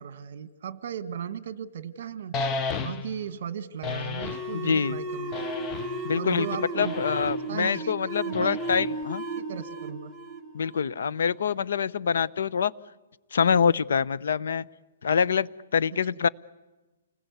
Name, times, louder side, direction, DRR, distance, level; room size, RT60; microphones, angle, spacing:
voice 1, 0.0-2.3 2.8-5.5 6.1-7.0 7.5-8.0 8.2-8.6 9.4-10.1, right 8 dB, 50° right, 13 dB, 1.6 m, -36 dB
sound 1, 2.3-3.2 3.8-4.5 5.3-6.1 6.8-7.4 8.3-9.0, left 4 dB, 15° left, 0.8 m, -33 dB
sound 2, 4.2-11.4, right 1 dB, 5° right, 1.5 m, -34 dB
voice 2, 4.5-5.0 6.0-6.5 6.8-9.2 10.5-12.7 13.3-14.6 15.0-16.3, left 6 dB, 70° left, 17 dB, 0.8 m, -25 dB
29.5 x 20.5 x 8.3 m, 1.1 s
hypercardioid pair, 170°, 0 cm